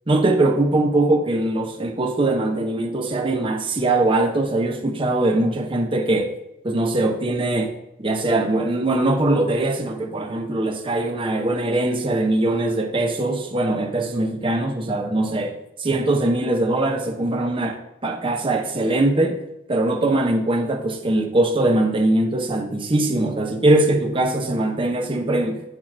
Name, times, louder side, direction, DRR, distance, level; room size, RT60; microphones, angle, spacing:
voice 1, 0.1-6.3 6.6-7.7 8.0-19.4 19.7-25.6, right 2 dB, 25° right, 0.7 m, -21 dB
8.7 x 2.9 x 5.8 m
head